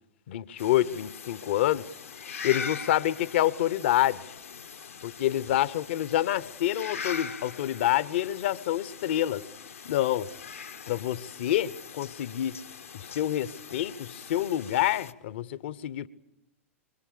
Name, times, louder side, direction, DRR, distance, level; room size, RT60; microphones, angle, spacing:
voice 1, 0.3-1.9 2.4-4.2 5.0-9.4 9.8-10.3 10.9-12.6 12.9-16.1, left 13 dB, 55° left, 1.0 m, -27 dB
sound 1, 0.6-15.1, left 6 dB, 75° left, 1.4 m, -42 dB
25.5 x 25.0 x 8.6 m
figure-of-eight pair, 100°, 7 cm